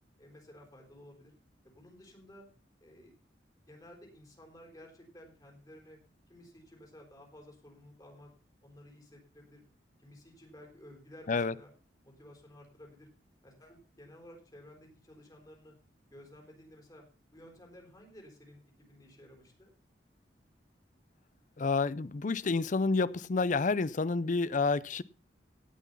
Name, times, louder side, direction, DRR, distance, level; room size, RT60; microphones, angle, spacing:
voice 1, 0.2-1.3 1.6-2.5 2.8-3.1 3.6-6.0 6.3-8.3 8.6-9.6 10.0-11.7 12.0-13.1 13.4-15.7 16.1-17.0 17.3-19.7, left 1 dB, 20° left, 1 dB, 4.3 m, -54 dB
voice 2, 21.6-25.0, left 4 dB, 45° left, 18 dB, 0.5 m, -29 dB
17.5 x 6.1 x 5.5 m, 0.36 s
head